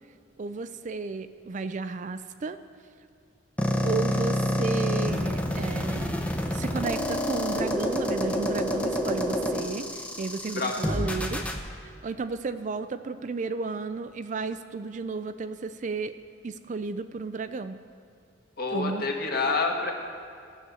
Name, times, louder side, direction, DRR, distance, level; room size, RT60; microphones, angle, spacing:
voice 1, 0.4-2.6 3.8-6.1 6.5-11.4 12.0-16.1 16.4-17.8 18.7-19.1, right 4 dB, 40° right, 11 dB, 0.4 m, -33 dB
sound 1, 3.6-11.6, equal, 5° left, 0.8 m, -28 dB
voice 2, 18.6-19.9, left 3 dB, 50° left, 1 dB, 1.6 m, -27 dB
14.0 x 7.9 x 6.8 m, 2.3 s
head